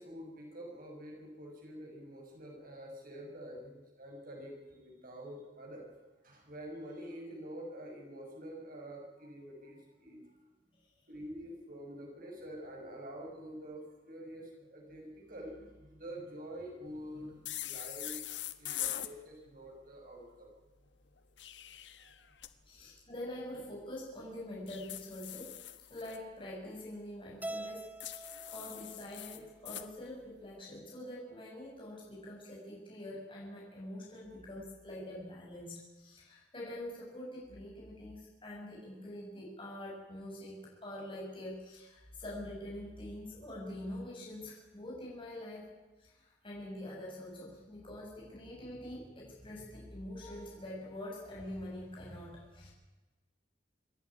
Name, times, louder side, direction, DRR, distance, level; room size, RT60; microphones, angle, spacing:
voice 1, 0.0-5.8 6.2-10.2 11.1-18.2 18.6-20.5 22.0-22.1, equal, 50° right, 0 dB, 6.5 m, -47 dB
sound 1, 17.5-19.1 21.2-22.5 24.7-26.2 28.0-29.9, left 13 dB, 80° left, 1.2 m, -42 dB
voice 2, 18.6-19.0 22.7-25.5 25.9-40.5 40.8-45.7 46.0-52.7, left 1 dB, 30° left, -4 dB, 6.7 m, -45 dB
Keyboard (musical), 27.4-29.8, right 1 dB, 10° right, 1.0 m, -45 dB
26.0 x 11.0 x 9.8 m, 1.2 s
head